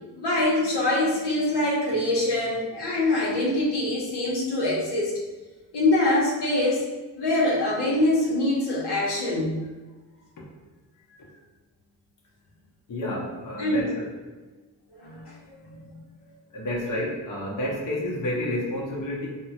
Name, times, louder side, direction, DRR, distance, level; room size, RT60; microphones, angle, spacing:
voice 1, 0.1-5.1 5.7-6.8 7.2-9.7 13.6-13.8 14.9-16.0, left 1 dB, 70° left, -5 dB, 0.9 m, -24 dB
voice 2, 12.9-14.1 16.5-19.3, left 1 dB, 50° left, -4 dB, 0.9 m, -30 dB
3.4 x 2.1 x 2.8 m, 1.2 s
cardioid pair, 70°, 42 cm